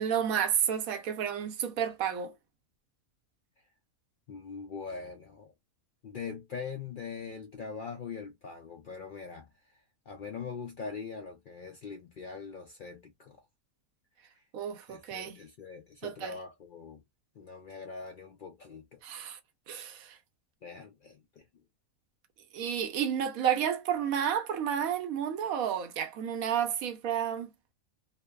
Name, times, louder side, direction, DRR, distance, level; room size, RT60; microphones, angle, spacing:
voice 1, 0.0-2.3 14.5-15.4 16.0-16.4 19.0-19.4 19.7-20.2 22.5-27.5, right 9 dB, 80° right, 1.1 m, -31 dB
voice 2, 4.3-5.5 6.0-9.8 10.1-13.4 14.4-14.5 14.9-17.0 17.4-19.0 20.6-21.4, left 5 dB, 85° left, 0.4 m, -42 dB
3.0 x 2.0 x 2.2 m
omnidirectional pair, 1.4 m